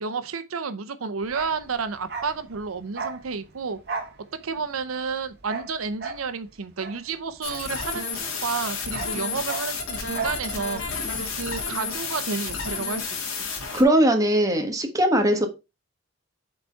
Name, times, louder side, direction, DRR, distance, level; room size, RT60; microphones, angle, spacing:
voice 1, 0.0-3.8 4.3-10.8 11.3-13.5, right 5 dB, 90° right, 0.7 m, -31 dB
Bark, 1.2-8.3 8.5-10.5 10.7-10.9, right 4 dB, 50° right, 1.7 m, -36 dB
sound 1, 7.4-13.8, left 4 dB, 85° left, 2.2 m, -31 dB
voice 2, 13.7-15.5, right 1 dB, 15° right, 1.3 m, -20 dB
7.8 x 4.1 x 4.5 m
head